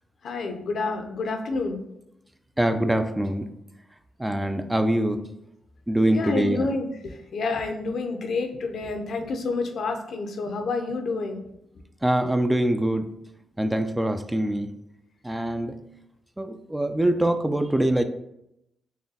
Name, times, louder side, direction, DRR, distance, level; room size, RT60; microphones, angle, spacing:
voice 1, 0.2-1.8 6.1-11.4, left 3 dB, 70° left, 5 dB, 0.5 m, -29 dB
voice 2, 2.6-3.5 4.2-5.2 5.9-6.7 12.0-13.1 13.6-14.7 15.2-15.8 16.4-18.0, right 1 dB, 10° right, 8 dB, 0.3 m, -24 dB
4.0 x 3.0 x 2.7 m, 0.81 s
supercardioid pair, 60°, 0 cm